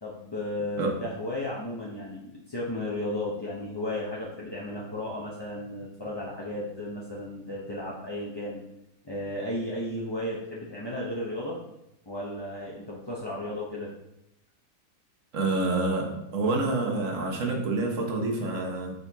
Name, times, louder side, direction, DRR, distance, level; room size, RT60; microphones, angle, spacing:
voice 1, 0.0-8.6 9.0-11.6 12.1-13.9, left 1 dB, 25° left, -6 dB, 0.6 m, -34 dB
voice 2, 15.3-18.9, right 2 dB, 55° right, 1 dB, 1.4 m, -27 dB
6.9 x 4.4 x 3.5 m, 0.85 s
omnidirectional pair, 1.7 m